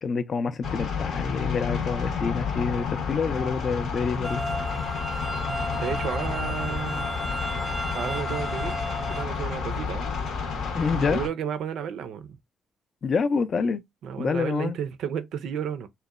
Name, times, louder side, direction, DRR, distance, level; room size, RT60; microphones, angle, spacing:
voice 1, 0.0-4.4 10.7-11.2 13.0-13.8 14.2-14.8, left 5 dB, 50° left, 0.3 m, -27 dB
sound 1, 0.6-11.3, left 5 dB, 75° left, 0.7 m, -30 dB
sound 2, 4.2-9.2, equal, ahead, 0.6 m, -34 dB
voice 2, 5.5-7.1 7.9-8.8 9.1-10.1 10.9-12.4 14.0-15.9, right 8 dB, 80° right, 0.4 m, -32 dB
2.9 x 2.0 x 2.3 m
cardioid pair, 90°, 0 cm